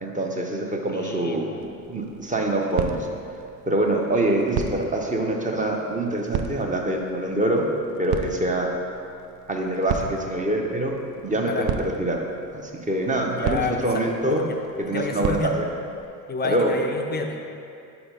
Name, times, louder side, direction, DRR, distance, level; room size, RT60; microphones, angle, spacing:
voice 1, 0.0-1.5 1.9-3.0 3.7-7.7 8.0-8.7 9.5-10.9 11.2-12.2 12.5-14.4 14.8-15.7 16.4-16.7, right 1 dB, 15° right, 1 dB, 0.7 m, -25 dB
voice 2, 0.9-1.6 11.3-11.7 13.4-14.6 14.9-15.5 16.3-17.4, left 4 dB, 20° left, 3 dB, 0.5 m, -30 dB
sound 1, 1.5-16.1, right 7 dB, 50° right, 0.5 m, -35 dB
4.7 x 4.3 x 5.2 m, 2.6 s
hypercardioid pair, 60°, 50 cm